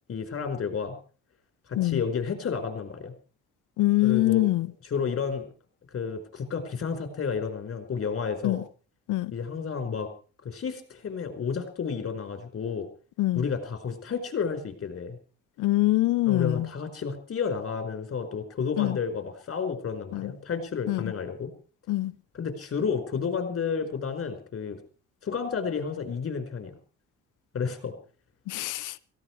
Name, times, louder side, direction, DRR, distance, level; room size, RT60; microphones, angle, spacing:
voice 1, 0.1-0.9 1.7-3.1 4.0-5.5 5.9-8.6 9.3-10.1 10.4-12.9 13.3-15.2 16.2-21.5 22.3-24.8 25.2-26.7 27.5-27.9, left 6 dB, 50° left, 5.0 m, -31 dB
voice 2, 3.8-4.7 8.4-8.6 9.1-9.3 13.2-13.4 15.6-16.7 18.8-19.0 20.1-20.3 20.9-21.1 21.9-22.1 28.5-28.9, left 18 dB, 90° left, 0.9 m, -24 dB
17.5 x 16.0 x 4.7 m
cardioid pair, 90°, 30 cm